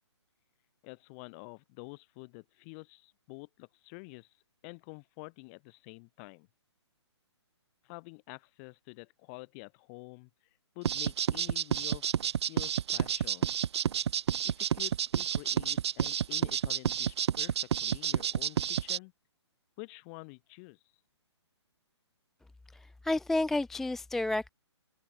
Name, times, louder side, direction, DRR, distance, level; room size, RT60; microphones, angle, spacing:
voice 1, 0.8-4.3 4.6-6.5 7.8-10.3 10.7-12.1 12.5-13.5 14.4-19.1 19.8-20.8, left 33 dB, 30° left, 6.8 m, -48 dB
sound 1, 10.8-19.0, right 9 dB, 65° right, 0.5 m, -30 dB
voice 2, 22.7-24.5, left 2 dB, ahead, 0.4 m, -31 dB
hypercardioid pair, 150°, 15 cm